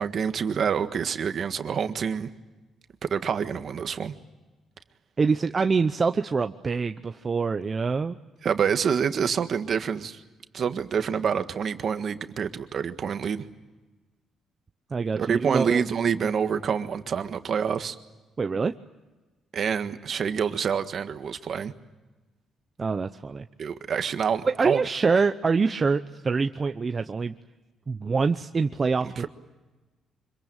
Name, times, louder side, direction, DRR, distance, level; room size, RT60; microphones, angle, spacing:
voice 1, 0.0-2.3 3.0-4.1 8.4-10.2 10.5-13.4 15.2-17.9 19.5-21.7 23.6-24.8 29.0-29.3, right 7 dB, 55° right, 9 dB, 1.6 m, -27 dB
voice 2, 5.2-8.2 14.9-15.8 18.4-18.7 22.8-23.5 24.4-27.3 27.9-29.3, right 4 dB, 35° right, 8 dB, 0.8 m, -25 dB
25.5 x 22.5 x 9.0 m, 1.2 s
cardioid pair, 90°, 0 cm